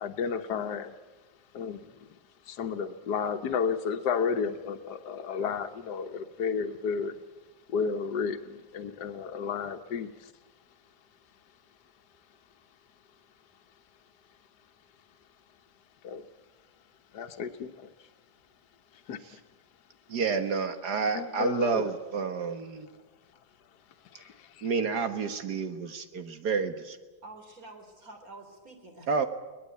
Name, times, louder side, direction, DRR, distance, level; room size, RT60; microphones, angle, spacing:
voice 1, 0.0-0.9 1.5-1.9 2.5-7.2 7.7-10.1 16.0-16.2 17.1-17.9 19.1-19.4 21.1-21.9 24.1-24.7, left 6 dB, 75° left, 7 dB, 1.6 m, -32 dB
voice 2, 20.1-22.9 24.6-27.0 29.1-29.3, right 5 dB, 70° right, 8 dB, 2.0 m, -29 dB
voice 3, 27.2-29.3, right 2 dB, 55° right, 4 dB, 4.2 m, -48 dB
22.5 x 20.0 x 8.5 m, 1.3 s
omnidirectional pair, 1.8 m